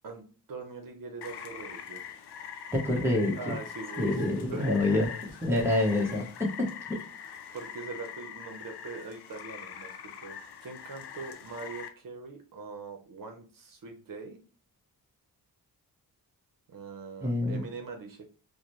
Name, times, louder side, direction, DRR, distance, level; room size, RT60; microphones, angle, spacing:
voice 1, 0.0-2.0 3.3-4.2 4.5-5.4 7.5-14.4 16.7-18.3, right 4 dB, 60° right, 4 dB, 0.8 m, -42 dB
Rain, 1.2-11.9, left 8 dB, 85° left, 0.6 m, -43 dB
voice 2, 2.7-3.5 4.0-5.1 5.4-6.3 17.2-17.7, left 1 dB, 5° right, -2 dB, 1.0 m, -26 dB
4.8 x 2.2 x 3.0 m, 0.37 s
wide cardioid pair, 135°, 38 cm